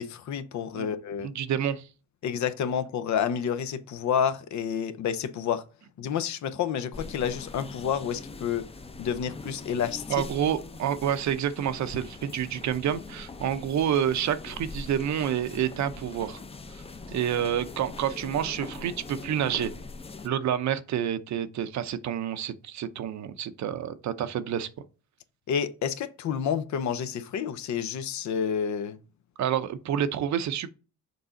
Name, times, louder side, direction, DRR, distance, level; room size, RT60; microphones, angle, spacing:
voice 1, 0.0-1.3 2.2-5.6 6.0-8.6 9.0-10.2 25.5-29.0, left 8 dB, 70° left, 0.8 m, -29 dB
voice 2, 1.2-1.8 10.1-16.4 17.1-19.7 20.2-24.7 29.4-30.7, right 9 dB, 65° right, 0.7 m, -28 dB
sound 1, 6.9-20.3, left 3 dB, 20° left, 0.6 m, -42 dB
6.8 x 4.0 x 3.8 m
cardioid pair, 90°, 30 cm